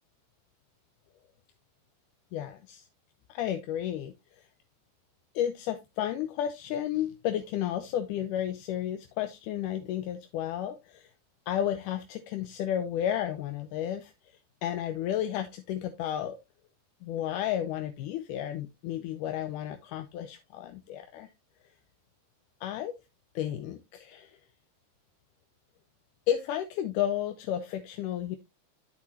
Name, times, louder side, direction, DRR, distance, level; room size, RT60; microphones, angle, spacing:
voice 1, 2.3-2.9 3.3-4.1 5.4-11.1 11.5-14.1 14.6-16.4 17.0-21.3 22.6-22.9 23.4-24.3 26.3-28.4, left 11 dB, 85° left, 2.3 m, -32 dB
12.5 x 4.7 x 2.8 m
omnidirectional pair, 3.6 m